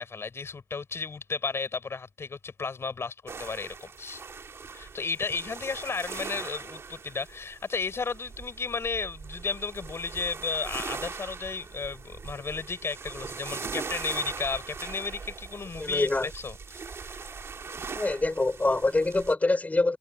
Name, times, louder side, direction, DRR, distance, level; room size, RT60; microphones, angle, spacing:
voice 1, 0.0-4.2 4.7-17.4, left 4 dB, 75° left, 6.3 m, -34 dB
sound 1, 3.3-19.3, right 5 dB, 80° right, 2.5 m, -41 dB
voice 2, 15.8-16.3 17.9-20.0, left 2 dB, 35° left, 4.6 m, -25 dB
wide cardioid pair, 65°, 4 cm